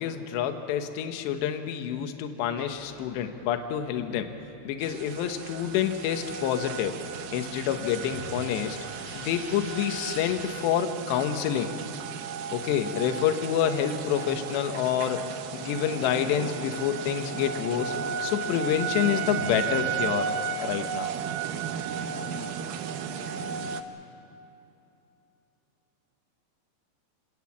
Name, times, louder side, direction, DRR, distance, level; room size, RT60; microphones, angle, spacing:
voice 1, 0.0-4.3 4.6-7.0 7.3-8.8 9.1-11.7 12.5-15.3 15.5-17.9 18.2-20.3 20.6-21.1, left 9 dB, 75° left, 6 dB, 3.2 m, -28 dB
sound 1, 2.5-10.6, right 1 dB, 45° right, 6.7 m, -49 dB
sound 2, 4.8-23.8, right 7 dB, 85° right, 2.1 m, -34 dB
28.5 x 18.0 x 7.3 m, 3.0 s
omnidirectional pair, 5.4 m